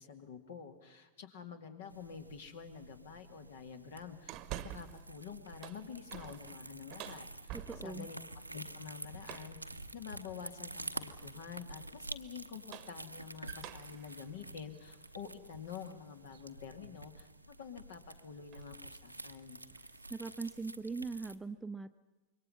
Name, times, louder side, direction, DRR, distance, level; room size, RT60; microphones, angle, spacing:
voice 1, 0.0-8.2 8.5-19.6, left 7 dB, 60° left, 8 dB, 2.2 m, -48 dB
sound 1, 1.9-21.4, right 1 dB, 90° right, 0.9 m, -49 dB
sound 2, 4.3-5.1 5.5-8.1 9.2-9.6 10.7-11.1 12.4-15.9 16.3-16.4 18.0-18.2 18.5-18.8 19.1-19.3 19.7-20.7, right 13 dB, 40° right, 1.1 m, -49 dB
voice 2, 7.5-8.1 20.1-21.9, right 4 dB, 5° right, 10 dB, 0.7 m, -41 dB
26.5 x 23.0 x 5.7 m, 1.2 s
figure-of-eight pair, 90°, 0 cm